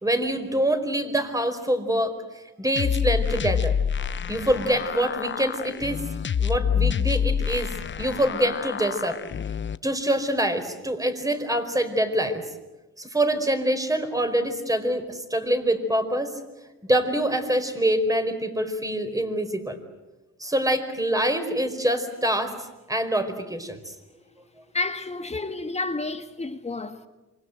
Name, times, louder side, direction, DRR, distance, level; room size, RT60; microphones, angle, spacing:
voice 1, 0.0-2.1 2.6-3.8 4.3-6.0 6.4-7.7 8.0-9.2 9.8-12.4 13.0-16.3 16.8-19.8 20.4-22.5 22.9-23.8, right 1 dB, 10° right, 4.7 m, -25 dB
sound 1, 2.8-9.8, left 7 dB, 40° left, 0.9 m, -27 dB
voice 2, 24.7-27.1, left 2 dB, 20° left, 1.9 m, -30 dB
28.0 x 25.0 x 8.0 m
cardioid pair, 90°, 30 cm